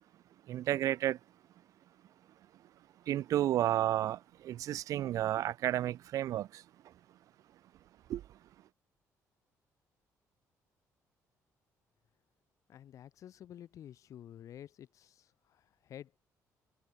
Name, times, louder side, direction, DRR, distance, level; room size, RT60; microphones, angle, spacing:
voice 1, 0.5-1.2 3.1-6.6 8.1-8.2, right 12 dB, 65° right, 0.4 m, -32 dB
voice 2, 12.7-16.2, left 10 dB, 60° left, 0.9 m, -51 dB
cardioid pair, 110°, 6 cm